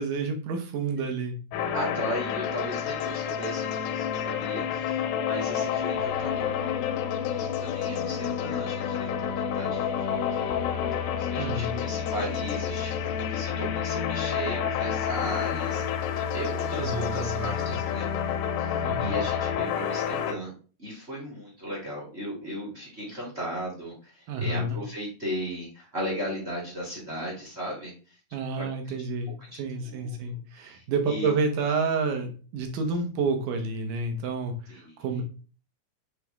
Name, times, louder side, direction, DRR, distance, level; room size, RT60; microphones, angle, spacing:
voice 1, 0.0-1.4 11.4-11.7 16.8-17.8 18.8-19.1 24.3-24.8 28.3-35.2, right 3 dB, 70° right, 5 dB, 2.4 m, -29 dB
sound 1, 1.5-20.3, left 8 dB, 80° left, 2.2 m, -29 dB
voice 2, 1.7-10.5 11.2-18.1 18.6-20.5 20.8-28.2 28.6-28.7 29.5-31.3 34.7-35.2, equal, 30° right, -3 dB, 1.1 m, -37 dB
8.0 x 3.4 x 3.5 m, 0.37 s
omnidirectional pair, 4.3 m